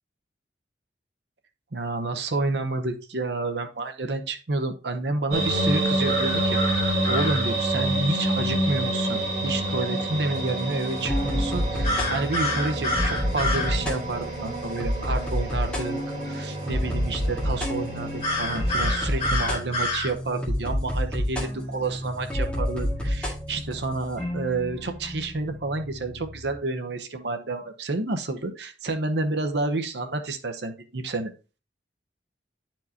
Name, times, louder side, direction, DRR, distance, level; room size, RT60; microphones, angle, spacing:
voice 1, 1.7-6.6 7.1-31.3, right 3 dB, 70° right, 6 dB, 0.8 m, -29 dB
sound 1, 5.3-19.3, right 1 dB, 40° right, 3.0 m, -28 dB
sound 2, 6.1-7.4 11.8-13.7 18.2-20.1, left 1 dB, 35° left, 2.6 m, -28 dB
sound 3, 10.3-26.6, equal, 5° left, 2.1 m, -29 dB
10.5 x 4.5 x 2.8 m, 0.33 s
head